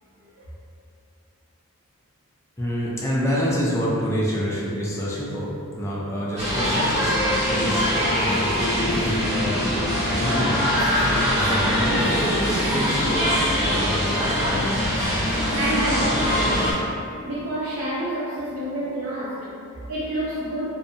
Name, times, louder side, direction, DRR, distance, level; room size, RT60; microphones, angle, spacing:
voice 1, 2.6-7.9 8.2-14.6, equal, 15° left, -7 dB, 0.4 m, -28 dB
sound 1, 6.4-16.7, equal, 25° right, 1.1 m, -22 dB
voice 2, 15.3-20.7, right 1 dB, 85° right, -12 dB, 0.6 m, -29 dB
2.6 x 2.2 x 2.6 m, 2.5 s
head